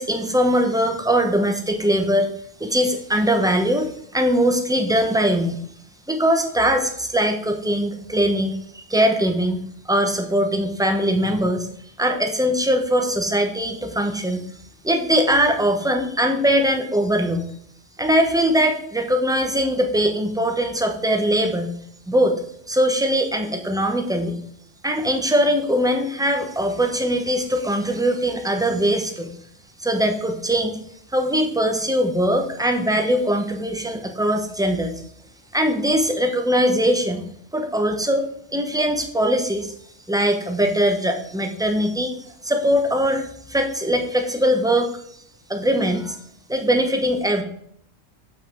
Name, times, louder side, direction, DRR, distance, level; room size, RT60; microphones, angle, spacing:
voice 1, 0.0-2.3 2.6-5.6 6.1-9.6 9.8-11.7 12.0-14.4 14.8-17.4 18.0-21.7 22.1-22.4 22.7-24.4 24.8-29.3 29.8-30.8 31.1-34.9 35.5-37.2 37.5-38.2 38.5-39.7 40.1-42.1 42.4-45.0 45.5-46.2 46.5-47.4, equal, 5° right, 4 dB, 0.7 m, -21 dB
7.1 x 5.9 x 3.8 m, 0.69 s
omnidirectional pair, 1.3 m